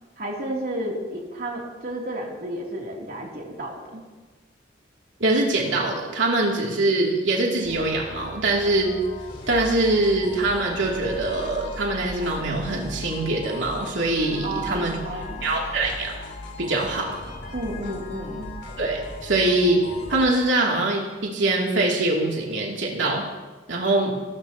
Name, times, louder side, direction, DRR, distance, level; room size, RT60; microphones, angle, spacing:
voice 1, 0.2-4.0 14.4-15.5 17.5-18.5, right 1 dB, 55° right, -2 dB, 3.1 m, -32 dB
voice 2, 5.2-8.9 9.5-15.0 15.4-16.1 16.6-17.2 18.8-19.8 20.1-23.3 23.7-24.1, right 2 dB, 85° right, -3 dB, 2.9 m, -23 dB
sound 1, 7.6-20.3, left 1 dB, 65° left, 4.0 m, -38 dB
26.5 x 14.0 x 3.0 m, 1.2 s
head